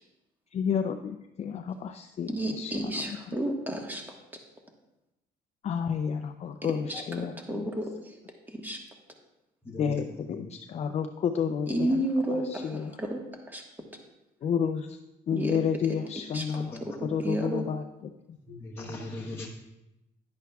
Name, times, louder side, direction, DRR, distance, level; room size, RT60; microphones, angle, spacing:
voice 1, 0.5-2.3 2.6-2.7 3.1-3.2 5.6-7.7 9.7-12.0 12.5-12.9 14.4-14.9 15.3-17.8, left 7 dB, 40° left, 7 dB, 0.4 m, -30 dB
voice 2, 2.3-4.0 6.6-8.1 8.5-8.8 11.7-13.6 15.3-15.6 15.9-16.0 16.3-17.6, right 1 dB, 10° right, 2 dB, 1.4 m, -32 dB
voice 3, 9.6-10.0 16.5-16.8 17.1-17.2 18.5-19.5, left 2 dB, 15° left, -4 dB, 1.1 m, -39 dB
10.5 x 10.5 x 2.3 m, 0.93 s
cardioid pair, 110°, 17 cm